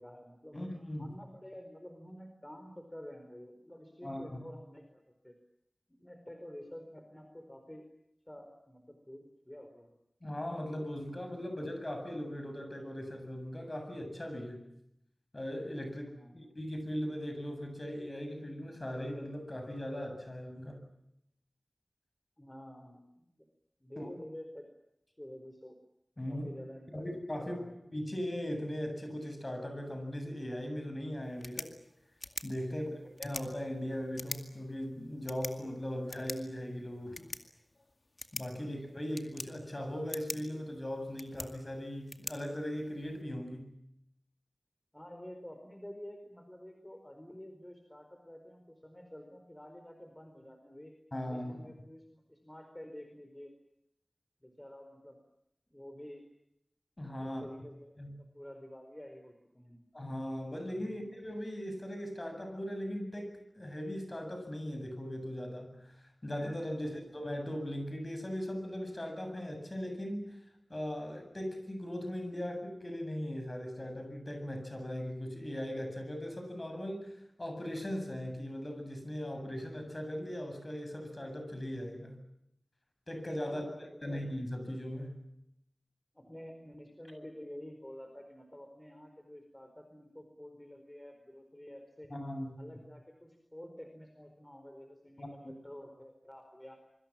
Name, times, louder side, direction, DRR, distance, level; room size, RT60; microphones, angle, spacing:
voice 1, 0.0-0.6 1.0-5.3 5.9-7.8 8.3-9.9 16.1-16.3 22.4-23.2 23.8-24.7 25.2-25.7 26.3-27.1 27.4-27.7 44.9-51.0 51.2-53.5 54.4-55.2 55.7-56.2 57.2-59.8 60.9-61.0 66.7-67.0 83.4-83.8 84.0-84.2 86.1-92.1 92.6-96.8, equal, 15° left, 5 dB, 4.5 m, -49 dB
voice 2, 0.5-1.1 4.0-4.4 10.2-14.7 15.3-20.8 24.0-24.1 26.2-26.5 26.9-27.6 27.9-31.7 32.4-37.3 38.3-43.7 51.1-51.5 57.0-57.5 58.0-58.1 59.9-66.0 66.2-70.4 70.7-77.1 77.4-82.2 83.1-85.2 92.1-92.5 95.2-95.5, equal, 35° left, 6 dB, 7.7 m, -39 dB
sound 1, 31.2-43.2, left 2 dB, 50° left, 2.2 m, -47 dB
25.5 x 24.5 x 7.5 m, 0.79 s
wide cardioid pair, 70°, 0 cm